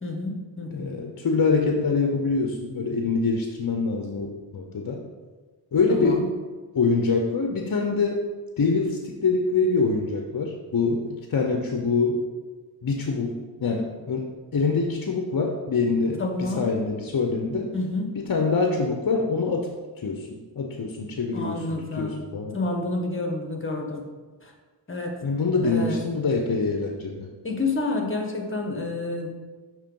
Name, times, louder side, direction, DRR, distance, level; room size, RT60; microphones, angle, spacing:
voice 1, 0.0-0.8 5.9-6.3 16.2-16.7 17.7-18.2 21.3-22.2 22.5-24.1 24.4-24.5 24.9-25.1 25.6-26.0 27.4-29.3, left 2 dB, 25° left, 2 dB, 1.1 m, -29 dB
voice 2, 0.7-5.0 5.7-6.3 6.7-8.2 8.6-12.2 12.8-17.7 18.1-19.7 20.0-22.6 25.2-27.3, left 4 dB, 50° left, 2 dB, 0.7 m, -25 dB
6.5 x 3.1 x 5.3 m, 1.4 s
wide cardioid pair, 65°, 46 cm